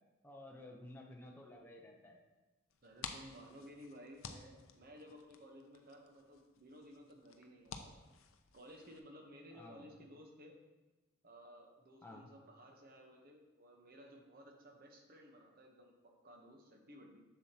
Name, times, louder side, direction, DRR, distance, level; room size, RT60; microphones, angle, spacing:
voice 1, 0.2-2.2 9.5-9.9 12.0-12.3, left 1 dB, 10° left, -1 dB, 0.6 m, -53 dB
sound 1, 2.7-9.0, left 6 dB, 70° left, 0.5 m, -53 dB
voice 2, 2.8-8.0 8.5-10.5 11.2-17.2, equal, 45° right, 2 dB, 0.9 m, -57 dB
7.1 x 7.0 x 2.8 m, 1.1 s
head